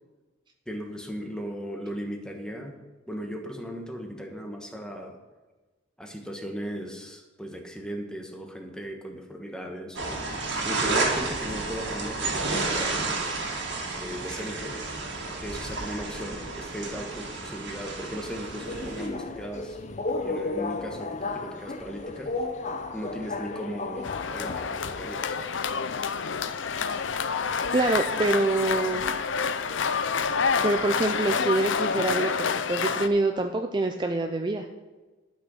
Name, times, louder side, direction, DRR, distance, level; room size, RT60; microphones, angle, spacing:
voice 1, 0.7-2.8 3.1-5.2 6.0-13.1 14.0-14.8 15.4-19.8 20.2-22.4 22.9-25.6, equal, 5° left, 2 dB, 1.4 m, -37 dB
sound 1, 9.9-19.1, right 3 dB, 65° right, 2.2 m, -31 dB
Subway metro underground, 18.3-25.1, left 3 dB, 40° left, 0.7 m, -34 dB
sound 2, 24.0-33.1, left 5 dB, 70° left, 0.6 m, -28 dB
voice 2, 27.7-29.1 30.6-34.7, right 2 dB, 25° right, 5 dB, 0.5 m, -25 dB
11.5 x 6.4 x 6.3 m, 1.3 s
head